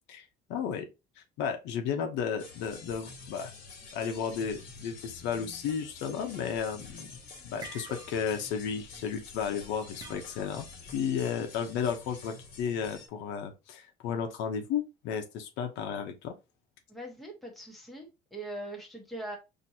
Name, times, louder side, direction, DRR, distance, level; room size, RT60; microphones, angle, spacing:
voice 1, 0.5-0.9 1.4-3.5 3.9-7.1 7.4-10.7 10.9-16.3, left 7 dB, 85° left, 0.9 m, -33 dB
sound 1, 2.4-13.1, left 4 dB, 50° left, 1.7 m, -48 dB
sound 2, 7.6-8.4 8.7-9.0 10.0-10.7, right 3 dB, 20° right, 0.7 m, -47 dB
voice 2, 16.9-19.4, right 1 dB, ahead, 1.2 m, -41 dB
4.3 x 2.9 x 2.8 m
cardioid pair, 150°, 18 cm